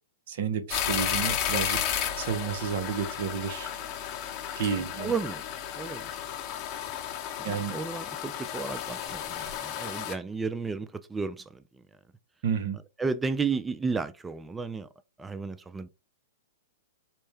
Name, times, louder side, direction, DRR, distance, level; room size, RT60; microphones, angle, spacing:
voice 1, 0.3-1.8 2.2-3.7 4.6-5.1 7.4-7.8 12.4-12.8, right 7 dB, 60° right, 0.8 m, -31 dB
sound 1, 0.7-10.1, left 9 dB, 30° left, 0.8 m, -33 dB
voice 2, 4.8-5.5 5.8-6.2 7.4-11.8 12.7-14.9 15.2-15.9, right 4 dB, 10° right, 0.3 m, -33 dB
4.3 x 2.1 x 3.3 m
hypercardioid pair, 125°, 0 cm